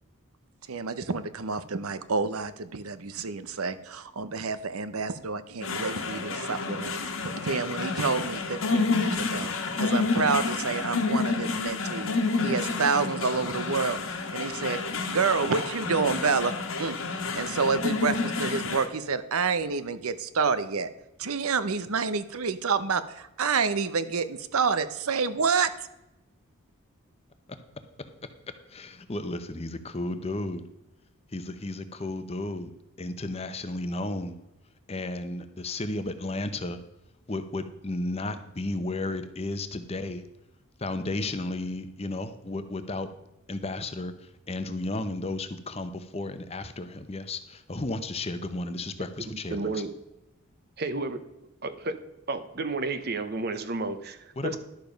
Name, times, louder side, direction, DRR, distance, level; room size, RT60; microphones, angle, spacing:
voice 1, 0.7-7.2 7.4-9.5 9.8-12.1 12.4-14.8 15.1-16.5 16.8-17.0 17.3-20.9 21.2-25.7, right 5 dB, 85° right, 13 dB, 0.8 m, -28 dB
sound 1, 5.6-18.9, left 4 dB, 70° left, 1.3 m, -29 dB
voice 2, 28.7-30.6 31.3-32.7 33.0-34.3 34.9-36.8 37.3-40.2 40.8-43.1 43.5-44.1 44.5-49.6 54.4-54.6, left 2 dB, 30° left, 10 dB, 0.8 m, -33 dB
voice 3, 49.2-49.9 50.8-51.2 51.6-52.0 52.3-54.6, right 3 dB, 45° right, 11 dB, 0.8 m, -32 dB
11.5 x 7.0 x 5.2 m, 0.92 s
head